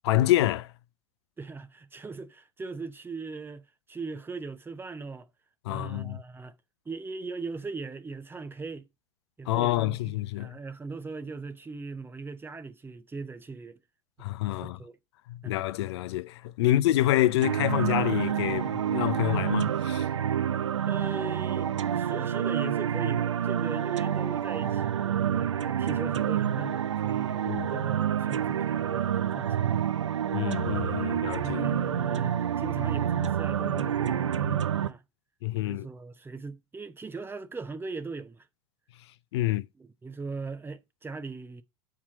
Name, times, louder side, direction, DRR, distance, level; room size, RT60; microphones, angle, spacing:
voice 1, 0.0-0.7 5.7-6.2 9.5-10.5 14.2-14.8 15.3-20.1 27.5-27.7 30.3-31.6 35.4-35.9 39.3-39.6, left 15 dB, 65° left, 0.5 m, -27 dB
voice 2, 1.4-5.3 5.7-6.6 6.9-8.9 9.4-13.8 14.6-14.9 15.4-15.6 16.6-16.7 20.9-29.8 31.0-35.0 35.6-38.5 39.4-41.6, right 4 dB, 15° right, 0.8 m, -39 dB
sound 1, 17.4-34.9, right 9 dB, 85° right, 0.6 m, -28 dB
7.1 x 4.7 x 6.0 m
hypercardioid pair, 90°, 15 cm